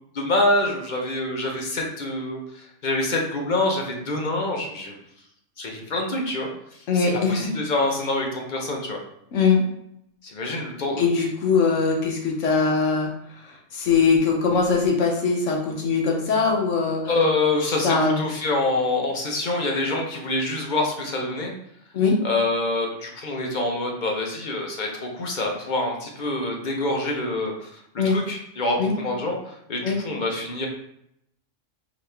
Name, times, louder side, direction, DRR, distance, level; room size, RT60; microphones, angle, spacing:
voice 1, 0.1-4.9 5.6-6.5 6.9-9.0 10.2-11.0 17.1-21.5 22.2-27.7 28.0-30.7, left 2 dB, 45° left, 0 dB, 0.7 m, -26 dB
voice 2, 6.9-7.5 9.3-9.6 11.0-13.1 13.7-17.1 17.8-18.2 21.9-22.2 28.0-28.1 28.8-28.9 29.8-30.0, left 5 dB, 70° left, 0 dB, 1.1 m, -21 dB
4.1 x 2.9 x 3.2 m, 0.76 s
omnidirectional pair, 1.3 m